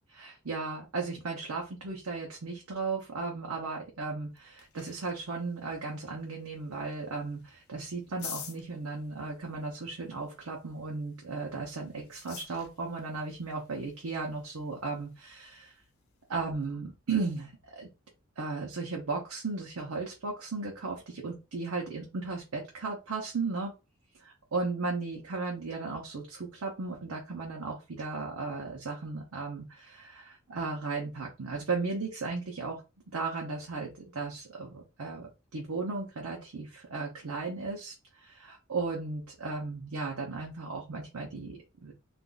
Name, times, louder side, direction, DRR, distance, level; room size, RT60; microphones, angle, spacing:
voice 1, 0.1-15.7 16.3-17.9 18.4-23.7 24.2-32.8 33.1-41.9, right 3 dB, 90° right, -1 dB, 0.7 m, -36 dB
sound 1, 4.1-16.7, left 8 dB, 80° left, 0.7 m, -51 dB
2.5 x 2.4 x 3.8 m, 0.28 s
head